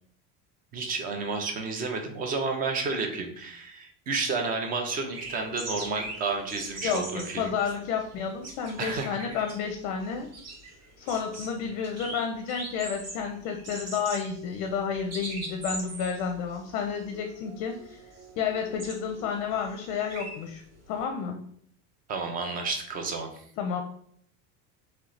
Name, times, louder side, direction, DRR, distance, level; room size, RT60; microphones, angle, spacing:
voice 1, 0.7-7.5 8.8-9.2 22.1-23.3, right 4 dB, 25° right, 4 dB, 0.5 m, -31 dB
sound 1, 5.1-21.0, right 2 dB, 40° right, 1.1 m, -42 dB
voice 2, 6.8-10.3 11.0-18.0 18.4-20.6 20.9-21.5 23.6-23.8, left 6 dB, 50° left, 4 dB, 0.5 m, -31 dB
3.1 x 3.0 x 3.9 m, 0.64 s
cardioid pair, 165°, 38 cm